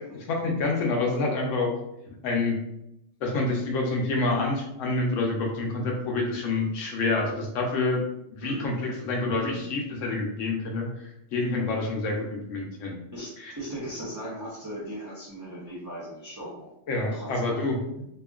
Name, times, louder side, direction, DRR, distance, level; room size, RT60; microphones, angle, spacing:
voice 1, 0.3-1.7 2.1-2.5 3.2-8.0 8.3-13.0 13.4-13.5 16.9-18.1, left 2 dB, 80° left, 1 dB, 1.0 m, -27 dB
voice 2, 9.4-9.7 13.1-16.7 17.1-17.8, right 1 dB, 25° right, -7 dB, 0.4 m, -38 dB
2.8 x 2.3 x 2.3 m, 0.83 s
omnidirectional pair, 1.3 m